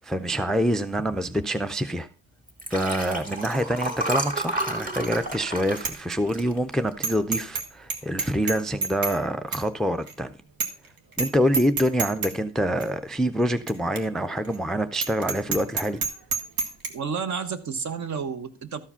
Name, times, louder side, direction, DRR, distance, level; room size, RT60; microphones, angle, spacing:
voice 1, 0.0-2.1 2.7-10.3 11.2-16.0, equal, ahead, 0.4 m, -26 dB
Liquid, 2.5-7.1 7.6-8.1, right 1 dB, 25° right, 1.8 m, -31 dB
Bicycle bell, 5.0-5.4 5.8-5.9 6.3-6.4 7.0-7.6 7.9-9.2 9.5-9.6 10.1-10.2 10.6-10.9 11.1-11.3 11.5-12.3 12.8-12.9 13.7-13.8 14.0-14.1 14.4-14.6 14.9-16.9, right 4 dB, 80° right, 1.5 m, -28 dB
voice 2, 16.9-18.8, right 6 dB, 55° right, 1.1 m, -31 dB
13.0 x 4.8 x 5.6 m
cardioid pair, 130°, 34 cm